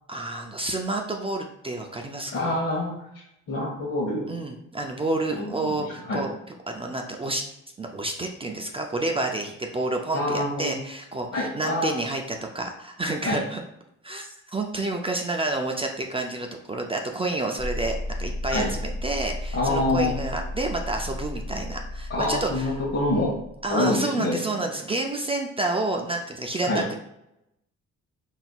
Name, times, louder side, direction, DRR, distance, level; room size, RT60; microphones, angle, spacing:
voice 1, 0.1-2.6 4.3-6.3 6.7-7.4 7.8-13.6 14.0-22.7 23.6-26.9, right 2 dB, 20° right, 2 dB, 0.4 m, -29 dB
voice 2, 2.3-2.9 3.5-4.2 5.3-5.8 6.1-6.2 10.1-10.7 11.3-11.9 13.2-13.4 18.5-18.7 19.5-20.1 22.1-23.3 23.7-24.4 26.6-26.8, left 2 dB, 55° left, -4 dB, 1.2 m, -26 dB
sound 1, 17.6-23.7, left 1 dB, 15° left, 0.7 m, -34 dB
4.2 x 4.0 x 2.3 m, 0.81 s
cardioid pair, 90°, 30 cm